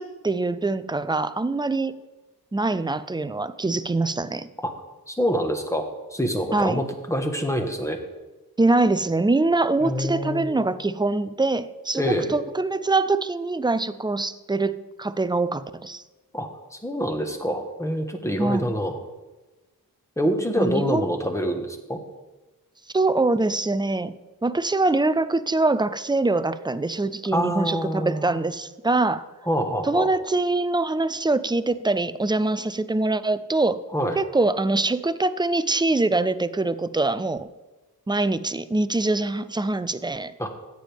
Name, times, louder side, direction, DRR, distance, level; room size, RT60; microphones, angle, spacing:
voice 1, 0.0-2.0 2.5-4.5 6.5-6.8 8.6-16.0 18.4-18.7 20.6-21.1 22.9-24.1 24.4-29.3 29.8-33.8 34.2-37.5 38.1-40.3, right 2 dB, 10° right, 13 dB, 0.4 m, -24 dB
voice 2, 5.1-8.0 9.8-10.5 11.9-12.3 16.3-19.0 20.2-22.0 27.3-28.3 29.5-30.1 33.9-34.2 40.4-40.5, equal, 10° left, 4 dB, 1.3 m, -26 dB
14.0 x 9.2 x 3.5 m, 1.2 s
wide cardioid pair, 90°, 37 cm